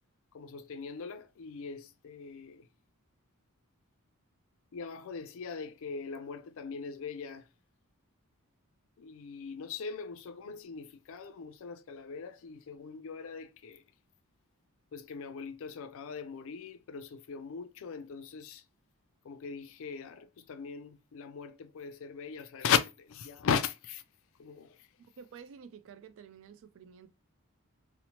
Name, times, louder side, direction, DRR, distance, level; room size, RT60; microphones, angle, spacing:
voice 1, 0.3-2.6 4.7-7.4 9.0-13.8 14.9-18.6 19.2-24.0 24.4-24.8, left 6 dB, 60° left, 0.4 m, -38 dB
voice 2, 25.2-27.1, right 6 dB, 60° right, 0.3 m, -50 dB
2.8 x 2.0 x 2.8 m
head